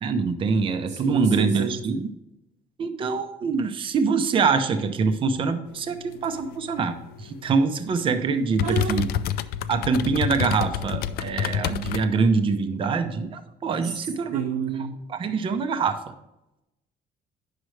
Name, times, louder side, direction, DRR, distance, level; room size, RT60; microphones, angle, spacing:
voice 1, 0.0-2.1 2.8-9.1 9.7-14.4 15.1-16.0, right 4 dB, 35° right, 0.7 m, -24 dB
voice 2, 0.9-1.8 8.6-9.0 13.8-15.0, right 7 dB, 75° right, 0.9 m, -29 dB
sound 1, 5.7-12.1, left 10 dB, 75° left, 0.4 m, -30 dB
9.4 x 6.4 x 3.2 m
cardioid pair, 180°, 16 cm